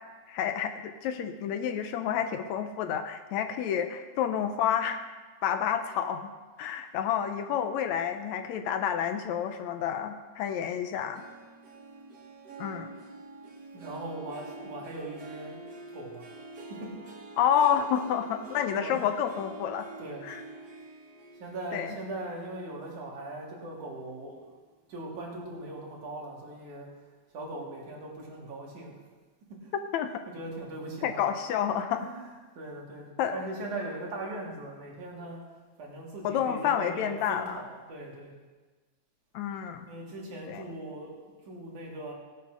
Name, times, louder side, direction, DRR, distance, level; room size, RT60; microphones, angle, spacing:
voice 1, 0.3-5.0 5.4-6.3 6.6-11.2 12.6-12.9 17.4-19.9 20.2-20.4 21.7-22.0 29.9-30.1 31.0-32.1 33.2-33.4 36.2-37.6 39.3-39.9 40.5-40.6, left 9 dB, 75° left, 8 dB, 1.9 m, -29 dB
Harp, 11.1-23.9 24.3-24.7 25.2-25.3, right 2 dB, 45° right, 1.4 m, -47 dB
voice 2, 13.7-15.6 15.9-16.3 16.7-17.0 18.4-19.0 20.0-20.3 21.4-24.4 24.9-26.9 27.3-28.9 29.5-29.7 30.3-31.3 32.0-32.3 32.6-35.4 35.8-38.4 39.9-41.1 41.5-42.1, right 2 dB, 75° right, -3 dB, 4.1 m, -40 dB
16.5 x 8.6 x 6.1 m, 1.3 s
omnidirectional pair, 3.5 m